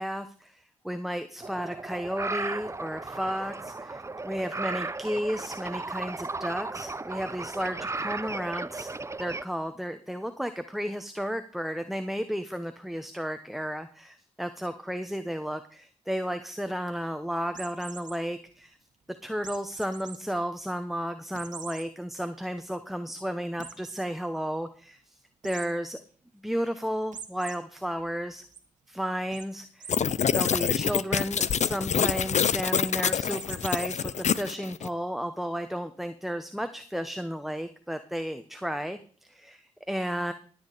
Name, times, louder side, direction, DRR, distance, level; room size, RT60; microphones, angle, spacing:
voice 1, 0.0-18.8 19.2-26.0 26.4-28.4 28.9-30.0 30.3-40.3, equal, ahead, 8 dB, 1.0 m, -33 dB
sound 1, 1.4-9.4, right 3 dB, 20° right, 0.5 m, -35 dB
sound 2, 17.5-18.2 19.4-20.2 20.6-20.7 21.3-21.8 22.3-22.4 22.7-22.8 23.6-24.0 25.4-25.7 27.1-27.5 28.0-28.6 29.3-29.5 29.8-29.9 30.2-30.5 31.3-31.7 33.3-34.0, right 7 dB, 75° right, 1.3 m, -43 dB
sound 3, 29.9-34.9, left 7 dB, 65° left, 0.5 m, -26 dB
16.0 x 8.6 x 4.1 m, 0.43 s
supercardioid pair, 45°, 13 cm